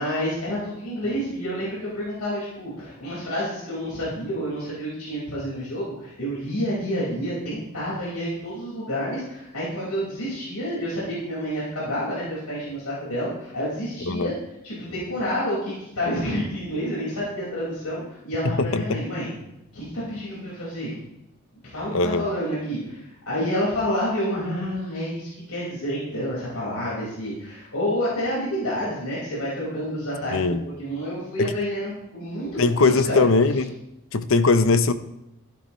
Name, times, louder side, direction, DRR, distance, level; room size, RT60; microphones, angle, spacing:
voice 1, 0.0-14.3 14.6-19.3 19.7-20.9 21.7-33.3, equal, 90° left, -7 dB, 5.1 m, -29 dB
voice 2, 18.6-19.0 21.9-22.2 30.3-30.6 31.4-31.5 32.6-33.8 34.1-34.9, left 3 dB, 60° left, 12 dB, 0.8 m, -20 dB
14.5 x 11.5 x 3.2 m, 0.88 s
head